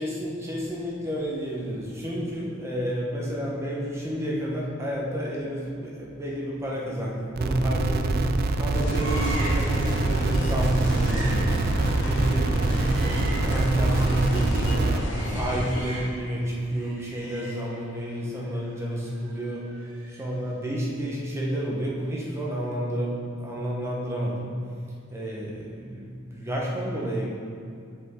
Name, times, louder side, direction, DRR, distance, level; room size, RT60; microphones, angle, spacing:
voice 1, 0.0-8.2 8.6-11.7 12.0-19.7 20.1-24.6 25.1-27.3, right 1 dB, 15° right, -4 dB, 1.0 m, -30 dB
sound 1, 7.4-15.0, right 2 dB, 50° right, 0.3 m, -25 dB
sound 2, 8.7-15.8, left 1 dB, 60° left, 0.9 m, -32 dB
sound 3, 9.0-9.7 10.0-10.2 10.6-14.3 14.6-16.3 16.6-20.4 20.6-20.8, right 1 dB, 80° right, 1.6 m, -41 dB
6.8 x 5.2 x 3.7 m, 2.4 s
head